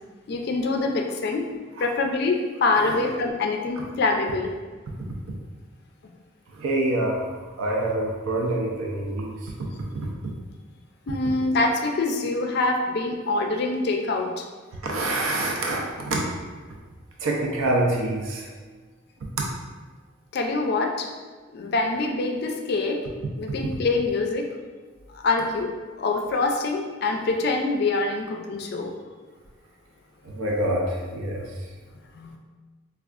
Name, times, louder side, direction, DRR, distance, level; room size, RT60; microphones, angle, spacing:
voice 1, 0.3-1.5 1.8-4.5 11.1-14.5 20.3-21.1 21.5-23.1 23.4-24.5 25.1-28.9 32.1-32.4, left 3 dB, 50° left, 2 dB, 0.3 m, -25 dB
voice 2, 6.6-7.2 7.6-9.3 9.6-9.7 14.8-16.2 17.2-18.5 30.3-31.5, right 1 dB, 85° right, -1 dB, 0.5 m, -26 dB
4.3 x 2.3 x 2.4 m, 1.4 s
head